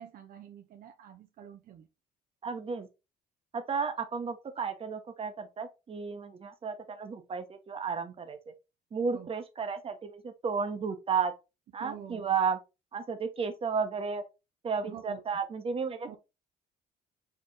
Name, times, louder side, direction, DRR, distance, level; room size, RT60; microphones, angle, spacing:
voice 1, 0.0-1.9 9.1-9.3 11.8-12.3 14.8-15.2 16.1-16.2, right 9 dB, 60° right, 0.6 m, -47 dB
voice 2, 2.4-2.9 3.5-8.4 8.9-11.3 11.7-12.6 12.9-14.2 14.6-16.2, right 5 dB, 35° right, 1.0 m, -33 dB
4.4 x 3.5 x 3.3 m
cardioid pair, 110°, 17 cm